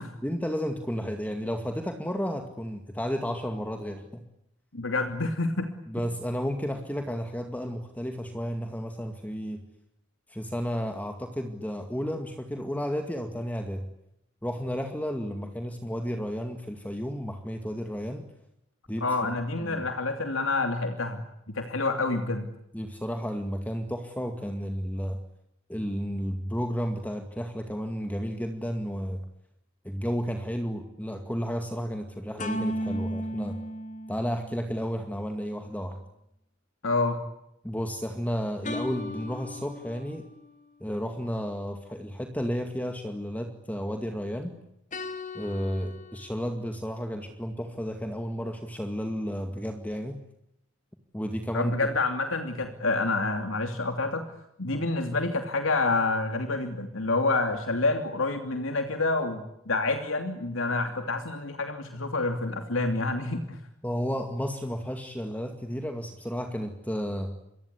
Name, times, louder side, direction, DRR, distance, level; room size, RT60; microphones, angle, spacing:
voice 1, 0.2-4.2 5.9-9.6 10.3-13.9 14.4-18.2 18.9-19.8 22.7-25.2 25.7-29.2 29.8-33.6 34.1-36.0 37.6-40.2 40.8-44.5 45.3-50.2 51.1-51.7 63.8-67.3, equal, 10° left, 5 dB, 2.2 m, -32 dB
voice 2, 4.7-5.7 19.0-22.5 36.8-37.2 51.5-54.3 54.6-63.6, left 3 dB, 90° left, 6 dB, 2.9 m, -28 dB
sound 1, 32.4-34.9 38.6-40.5 44.9-46.3, equal, 40° left, 3.0 m, -36 dB
28.5 x 24.0 x 8.4 m, 0.82 s
head